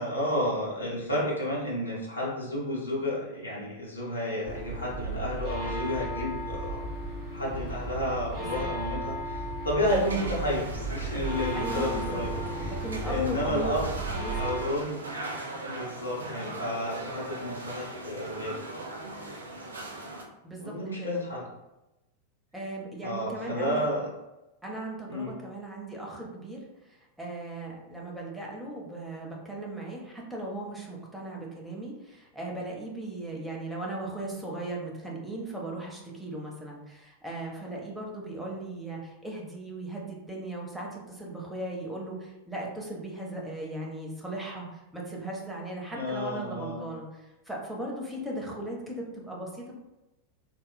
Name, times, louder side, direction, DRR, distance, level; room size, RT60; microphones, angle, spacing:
voice 1, 0.0-6.8 7.3-12.7 13.0-13.9 14.4-15.0 15.6-18.6 20.6-21.4 23.0-24.1 25.1-25.4 45.9-46.8, left 1 dB, 80° left, -4 dB, 0.6 m, -31 dB
sound 1, 4.4-14.6, right 1 dB, 45° right, 1.5 m, -34 dB
voice 2, 8.4-8.7 11.5-14.4 20.4-21.2 22.5-23.8 24.6-26.6 26.9-49.7, right 2 dB, 5° right, -3 dB, 0.6 m, -38 dB
sound 2, 9.8-20.2, right 2 dB, 70° right, 0.4 m, -39 dB
3.6 x 2.1 x 2.2 m, 0.98 s
figure-of-eight pair, 90°, 0 cm